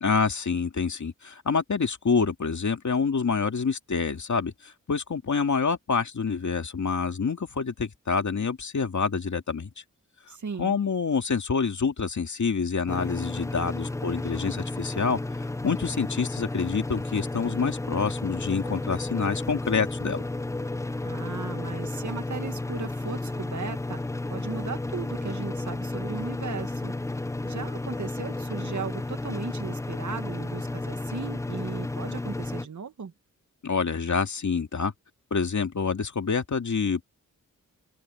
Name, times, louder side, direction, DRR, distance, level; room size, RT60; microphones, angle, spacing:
voice 1, 0.0-9.7 10.6-15.2 15.6-20.2 33.6-34.9 35.3-37.0, left 5 dB, 65° left, 2.3 m, -27 dB
voice 2, 10.3-10.8 21.0-24.0 24.3-26.9 27.4-33.1, right 5 dB, 65° right, 1.8 m, -37 dB
sound 1, 12.9-32.7, left 2 dB, 10° left, 0.4 m, -32 dB
open air
cardioid pair, 60°, 32 cm